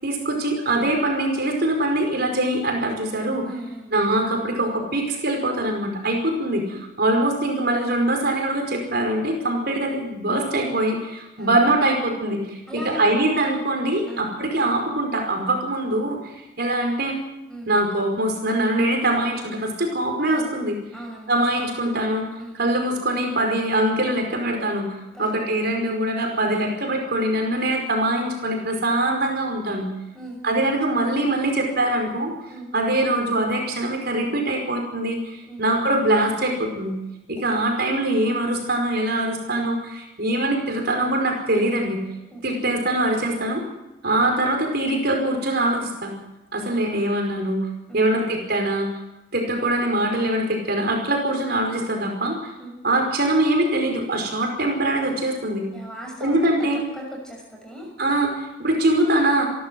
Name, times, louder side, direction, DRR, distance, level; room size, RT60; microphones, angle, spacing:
voice 1, 0.0-3.5 3.9-17.2 17.7-20.8 21.3-22.3 22.5-29.9 30.4-32.3 32.7-36.9 37.3-42.0 42.4-43.6 44.0-46.1 46.5-47.6 47.9-48.9 49.3-52.5 52.8-55.6 56.2-56.8 58.0-59.4, right 1 dB, 55° right, 2 dB, 5.1 m, -23 dB
voice 2, 3.4-3.9 11.4-11.6 12.7-13.1 14.1-14.4 17.5-17.7 20.3-20.5 20.9-21.7 22.4-22.6 25.1-25.3 30.1-30.4 32.5-32.7 35.5-35.6 37.4-37.5 42.3-42.9 47.9-48.2 52.6-52.8 55.7-56.7 56.9-57.9, right 1 dB, 5° left, 0 dB, 6.4 m, -38 dB
29.0 x 12.5 x 7.8 m, 0.97 s
head